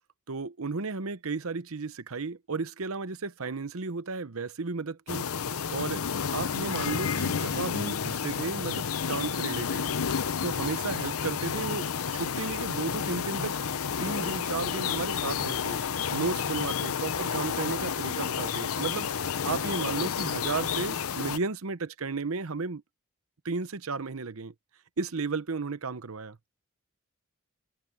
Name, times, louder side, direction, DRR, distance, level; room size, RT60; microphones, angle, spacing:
voice 1, 0.3-5.3 5.7-6.0 6.3-9.9 10.4-13.6 14.0-15.8 16.1-22.8 23.4-24.5 25.0-26.4, right 4 dB, 70° right, 0.9 m, -34 dB
sound 1, 5.1-21.4, left 7 dB, 80° left, 0.7 m, -31 dB
head